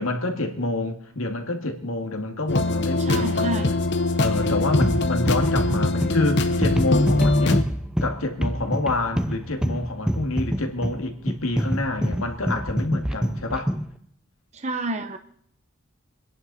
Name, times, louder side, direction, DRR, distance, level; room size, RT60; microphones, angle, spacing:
voice 1, 0.0-3.6 4.2-7.6 8.0-13.7, left 2 dB, 80° left, 4 dB, 2.1 m, -27 dB
sound 1, 2.5-7.6, left 2 dB, 55° left, 0.9 m, -22 dB
voice 2, 3.0-3.7 14.5-15.2, right 1 dB, 30° right, 7 dB, 0.8 m, -29 dB
sound 2, 4.4-13.9, equal, 5° right, 0.5 m, -26 dB
26.5 x 11.0 x 4.1 m, 0.65 s
head